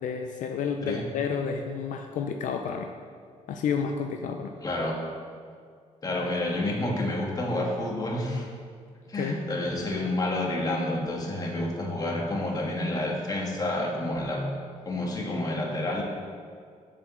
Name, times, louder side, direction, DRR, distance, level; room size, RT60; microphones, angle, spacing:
voice 1, 0.0-2.9 3.5-4.6 9.1-9.4, left 6 dB, 75° left, 4 dB, 0.5 m, -30 dB
voice 2, 4.6-5.0 6.0-8.5 9.1-14.4 14.8-16.0, left 1 dB, 30° left, -1 dB, 1.6 m, -29 dB
7.4 x 5.0 x 7.0 m, 2.1 s
cardioid pair, 125°, 13 cm